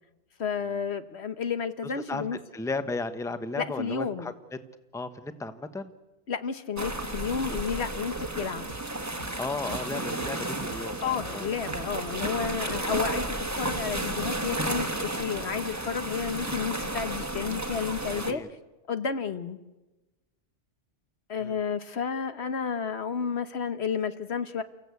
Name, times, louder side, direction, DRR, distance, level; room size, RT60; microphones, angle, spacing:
voice 1, 0.4-2.4 3.6-4.3 6.3-8.7 11.0-18.4 18.9-19.6 21.3-24.6, left 6 dB, 65° left, 10 dB, 1.3 m, -31 dB
voice 2, 2.5-4.3 4.9-5.9 7.8-7.9 9.4-11.5 18.2-18.5 21.4-21.6, left 3 dB, 5° left, 10 dB, 0.9 m, -34 dB
sound 1, 6.8-18.3, right 2 dB, 15° right, 1.4 m, -33 dB
sound 2, 7.2-7.4 7.7-15.5, right 3 dB, 40° right, 1.4 m, -46 dB
30.0 x 15.5 x 8.4 m, 1.1 s
omnidirectional pair, 1.2 m